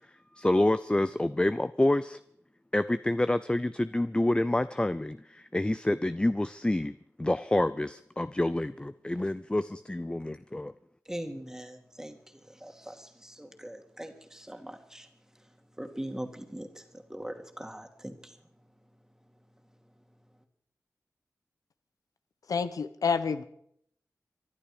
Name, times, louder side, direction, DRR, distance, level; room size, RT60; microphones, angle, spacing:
voice 1, 0.4-2.2 2.7-10.7, left 1 dB, 15° left, 13 dB, 0.5 m, -28 dB
voice 2, 11.1-12.2 12.6-15.1 15.8-16.8 17.1-18.3, right 1 dB, 10° right, 5 dB, 2.4 m, -41 dB
voice 3, 22.5-23.4, left 5 dB, 90° left, 11 dB, 0.9 m, -28 dB
23.5 x 11.5 x 5.1 m, 0.69 s
cardioid pair, 55°, 6 cm